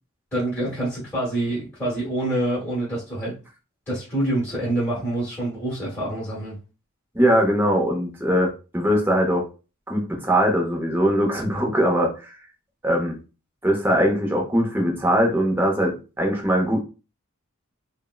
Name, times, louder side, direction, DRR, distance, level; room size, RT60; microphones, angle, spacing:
voice 1, 0.3-3.4 3.9-6.6, right 1 dB, 10° left, -8 dB, 1.2 m, -26 dB
voice 2, 7.1-9.5 9.9-12.4 12.8-13.2 13.6-16.8, equal, 10° right, 0 dB, 0.6 m, -21 dB
3.5 x 2.1 x 2.3 m, 0.32 s
head